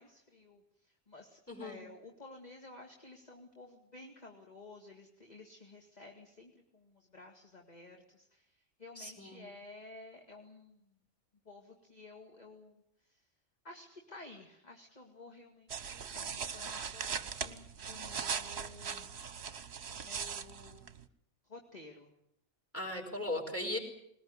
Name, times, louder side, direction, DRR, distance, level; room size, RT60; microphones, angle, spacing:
voice 1, 0.0-10.9 11.5-13.2 13.6-19.3 19.9-20.9 21.5-22.1, left 2 dB, 30° left, 2 dB, 2.4 m, -53 dB
voice 2, 1.5-1.8 9.0-9.4 22.7-23.8, left 1 dB, 10° left, 5 dB, 4.8 m, -37 dB
sound 1, 15.7-21.1, right 6 dB, 55° right, 1.3 m, -40 dB
21.0 x 20.0 x 9.7 m, 0.74 s
omnidirectional pair, 1.4 m